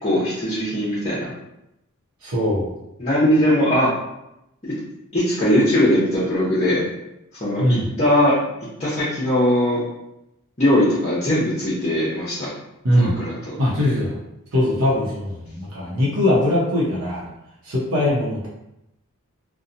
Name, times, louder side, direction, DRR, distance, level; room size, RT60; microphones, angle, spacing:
voice 1, 0.0-1.3 3.0-3.9 4.6-4.7 5.1-6.8 7.4-8.4 8.8-9.8 10.6-12.5 12.9-13.5, left 1 dB, 30° left, -9 dB, 0.7 m, -20 dB
voice 2, 2.2-2.7 7.6-7.8 12.8-13.1 13.6-14.2 14.5-17.3 17.6-18.5, left 1 dB, 70° right, -7 dB, 0.7 m, -21 dB
2.8 x 2.1 x 2.5 m, 0.87 s
head